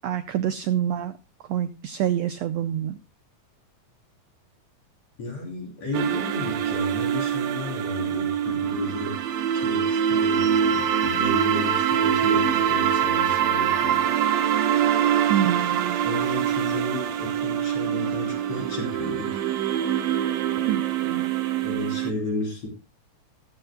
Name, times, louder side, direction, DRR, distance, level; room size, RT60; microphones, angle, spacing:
voice 1, 0.0-1.2 1.5-3.0 15.3-16.0 20.7-21.3, right 10 dB, 90° right, 9 dB, 1.4 m, -27 dB
voice 2, 5.2-9.1 9.5-14.0 16.0-19.4 21.6-22.7, left 2 dB, 50° left, 0 dB, 4.5 m, -33 dB
sound 1, 5.9-22.1, right 9 dB, 65° right, 2.1 m, -24 dB
15.5 x 13.5 x 2.2 m, 0.28 s
omnidirectional pair, 3.8 m